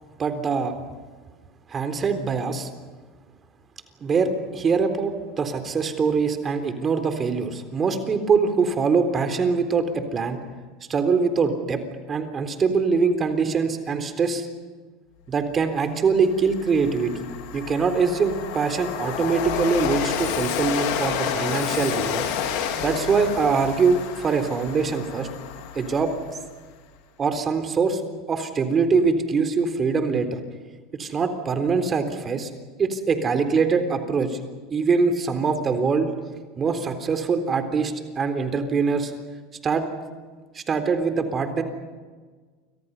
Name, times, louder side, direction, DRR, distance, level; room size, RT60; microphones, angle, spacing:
voice 1, 0.2-0.7 1.7-2.7 4.0-10.4 10.9-11.8 12.1-14.5 15.3-17.1 17.5-22.2 22.8-25.3 25.8-26.1 27.2-28.0 28.3-30.4 30.9-32.5 32.8-34.4 34.7-36.1 36.6-39.1 39.6-39.8 40.6-41.6, right 5 dB, 30° right, 8 dB, 3.7 m, -23 dB
Train, 15.7-15.8 16.2-26.6, left 8 dB, 65° left, 4.2 m, -30 dB
29.5 x 25.5 x 5.6 m, 1.4 s
hypercardioid pair, 85°, 0 cm